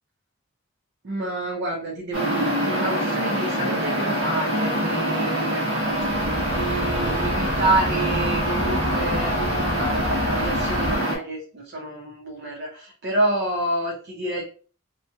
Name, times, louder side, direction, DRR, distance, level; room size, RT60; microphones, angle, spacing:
voice 1, 1.0-6.0 6.4-9.4 9.7-14.5, right 2 dB, 55° right, -1 dB, 0.6 m, -28 dB
sound 1, 2.1-11.2, equal, 90° right, 1.3 m, -25 dB
sound 2, 5.9-11.0, left 1 dB, 30° left, 0.4 m, -32 dB
2.9 x 2.9 x 2.2 m, 0.39 s
head